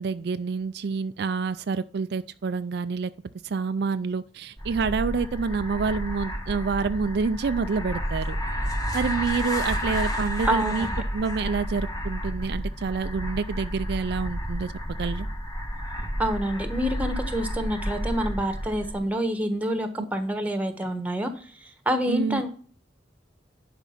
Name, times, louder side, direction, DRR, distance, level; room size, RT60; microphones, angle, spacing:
voice 1, 0.0-3.1 3.4-8.4 8.9-14.7 15.0-15.3 22.1-22.4, right 5 dB, 60° right, 12 dB, 0.4 m, -28 dB
sound 1, 4.6-19.0, equal, 20° left, 1.7 m, -31 dB
voice 2, 10.4-10.9 16.2-21.3 21.6-22.5, equal, 10° right, 8 dB, 1.3 m, -27 dB
10.5 x 5.2 x 5.8 m, 0.43 s
head